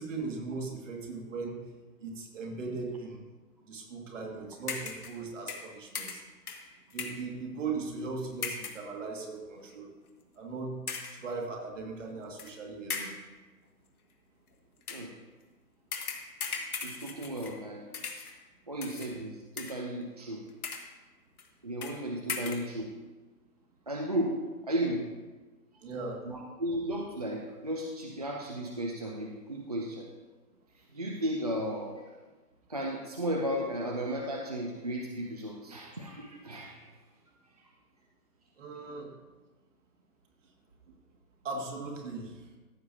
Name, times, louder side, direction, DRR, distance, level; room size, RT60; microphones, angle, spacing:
voice 1, 0.0-1.6 2.0-3.2 3.6-6.2 6.9-9.9 10.4-10.8 11.1-13.1 18.6-18.8 25.8-26.2 38.6-39.1 41.4-42.4, right 4 dB, 50° right, 0 dB, 2.0 m, -38 dB
sound 1, 4.7-5.2 5.5-7.3 8.4-8.9 9.6-9.7 10.9-11.3 12.4-12.5 12.9-13.3 14.8-15.1 15.9-17.7 17.9-18.4 18.8-19.1 19.6-20.0 20.5-21.0 21.4-21.5 21.8-22.0 22.3-22.7, left 5 dB, 65° left, 1.3 m, -38 dB
voice 2, 16.8-17.8 18.7-20.4 21.6-22.9 23.9-24.3 24.6-25.1 25.7-25.8 26.3-30.1 30.9-32.0 32.7-36.8, right 1 dB, 25° right, 0 dB, 0.4 m, -34 dB
14.5 x 6.9 x 2.7 m, 1.2 s
figure-of-eight pair, 135°, 47 cm